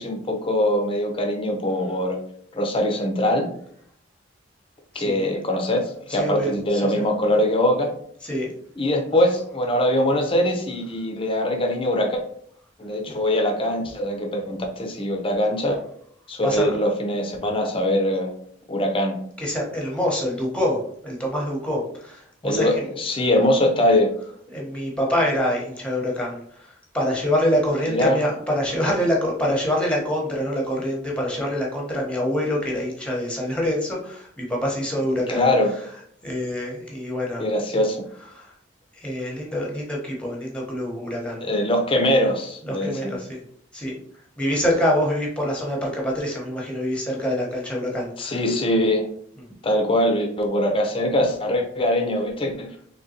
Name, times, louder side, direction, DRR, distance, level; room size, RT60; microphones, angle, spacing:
voice 1, 0.0-2.2 2.5-3.5 4.9-7.9 8.8-12.2 12.8-15.8 16.3-18.3 18.7-19.2 22.4-24.1 27.9-28.2 35.3-35.7 37.4-38.0 41.4-43.1 48.2-49.1 49.6-52.7, left 1 dB, 30° left, 3 dB, 0.6 m, -22 dB
voice 2, 4.9-5.3 6.1-7.0 8.2-8.5 16.4-16.8 19.4-22.8 24.5-26.4 26.9-35.4 36.2-37.4 38.3-38.5 39.0-41.4 42.6-43.4 43.7-44.0 44.4-48.4, equal, 5° left, -2 dB, 1.0 m, -25 dB
3.7 x 3.3 x 2.8 m, 0.64 s
head